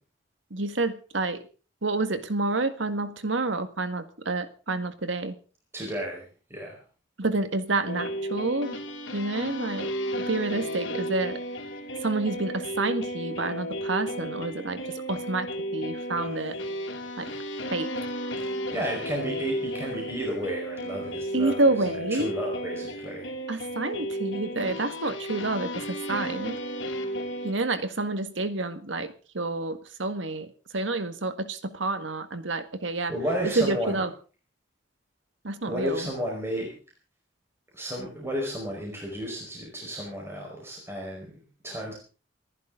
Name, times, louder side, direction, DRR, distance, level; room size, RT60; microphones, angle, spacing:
voice 1, 0.5-1.4 1.8-5.4 7.2-8.8 9.1-9.9 10.3-11.4 12.0-14.8 15.1-16.6 17.2-17.3 17.7-17.9 21.3-22.3 23.5-26.6 27.4-33.1 33.4-34.1 35.4-36.1, right 2 dB, 80° right, 9 dB, 1.8 m, -28 dB
voice 2, 5.7-6.7 17.3-17.6 18.4-23.3 33.1-34.0 35.6-36.7 37.7-41.3 41.6-41.9, equal, 15° right, -2 dB, 5.0 m, -33 dB
sound 1, 7.9-27.5, equal, 85° left, 3.2 m, -34 dB
28.5 x 11.0 x 3.9 m, 0.37 s
head